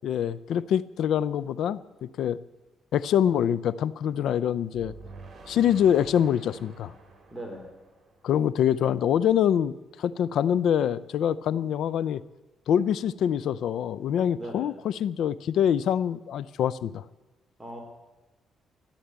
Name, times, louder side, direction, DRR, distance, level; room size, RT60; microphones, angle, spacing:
voice 1, 0.0-2.4 2.9-4.9 5.5-6.9 8.2-9.7 10.0-12.2 12.7-17.0, left 9 dB, 75° left, 19 dB, 0.5 m, -25 dB
sound 1, 4.7-8.8, right 3 dB, 45° right, 3.7 m, -48 dB
voice 2, 7.3-7.7 14.3-14.8 17.6-17.8, right 1 dB, 5° right, 1 dB, 3.8 m, -39 dB
14.5 x 10.0 x 8.2 m, 1.1 s
cardioid pair, 90°, 0 cm